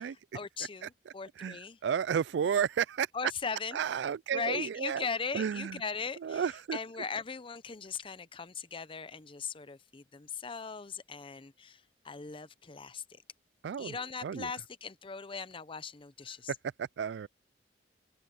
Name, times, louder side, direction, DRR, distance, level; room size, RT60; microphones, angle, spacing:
voice 1, 0.0-1.8 3.1-3.8 4.3-6.4 6.7-13.2 13.8-16.5, left 5 dB, 30° left, 0.7 m, -39 dB
voice 2, 1.4-3.1 3.7-5.1 5.3-5.8 6.2-6.8 13.6-14.5 16.8-17.3, right 7 dB, 65° right, 0.3 m, -32 dB
open air
head